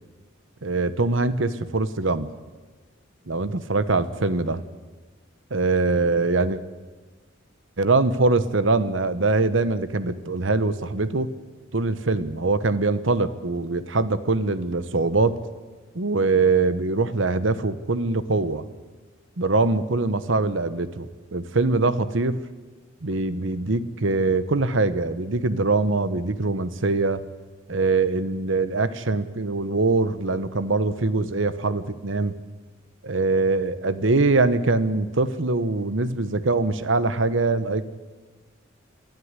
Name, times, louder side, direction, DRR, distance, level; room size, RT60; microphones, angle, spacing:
voice 1, 0.6-2.3 3.3-4.6 5.5-6.6 7.8-11.3 11.7-15.4 15.9-18.7 19.4-22.4 23.0-27.2 27.7-32.3 33.0-37.8, right 3 dB, 65° right, 14 dB, 1.1 m, -23 dB
21.5 x 13.5 x 9.7 m, 1.3 s
head